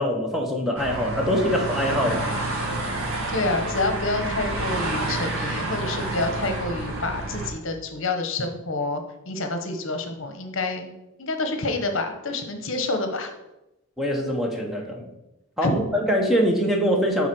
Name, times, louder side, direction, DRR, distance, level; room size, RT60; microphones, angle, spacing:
voice 1, 0.0-2.2 14.0-15.0 15.6-17.3, equal, ahead, 1 dB, 0.9 m, -23 dB
sound 1, 0.8-7.5, right 2 dB, 70° right, 1.6 m, -29 dB
voice 2, 3.3-10.9 11.2-13.3 15.6-15.7, left 2 dB, 60° left, 6 dB, 1.0 m, -28 dB
7.2 x 4.1 x 6.1 m, 0.92 s
head